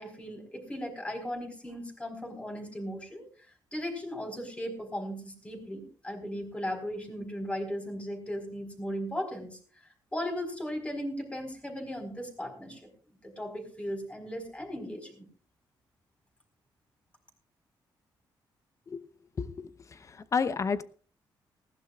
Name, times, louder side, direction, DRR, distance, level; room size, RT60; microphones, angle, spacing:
voice 1, 0.0-3.2 3.7-9.6 10.1-12.9 13.2-15.3, equal, 15° left, 4 dB, 4.5 m, -37 dB
voice 2, 19.4-20.8, left 5 dB, 40° left, 13 dB, 0.9 m, -31 dB
19.5 x 15.5 x 2.4 m, 0.40 s
cardioid pair, 95°, 8 cm